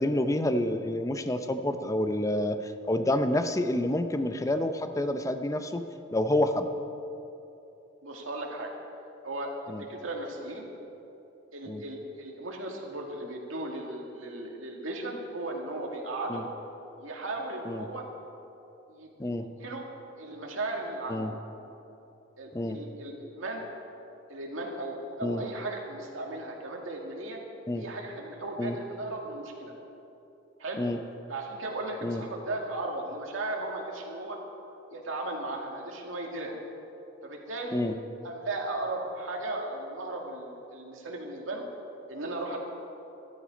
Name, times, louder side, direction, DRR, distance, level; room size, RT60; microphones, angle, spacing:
voice 1, 0.0-5.8 6.1-6.7 9.7-9.8 11.7-11.8 16.3-16.4 17.6-17.9 19.2-19.4 21.1-21.3 22.5-22.8 25.2-25.4 27.7-27.8 28.6-28.8 30.8-31.0 32.0-32.2 37.7-37.9, left 1 dB, 15° left, 8 dB, 0.6 m, -28 dB
voice 2, 8.0-8.7 9.2-10.7 11.5-16.4 17.0-18.0 18.9-19.3 19.6-19.9 20.2-21.3 22.4-23.6 24.3-27.4 27.7-29.7 30.6-30.8 31.3-34.4 34.9-36.6 37.2-37.8 38.2-41.6 42.1-42.6, right 2 dB, 85° right, 0 dB, 2.1 m, -36 dB
13.5 x 13.0 x 5.1 m, 2.9 s
head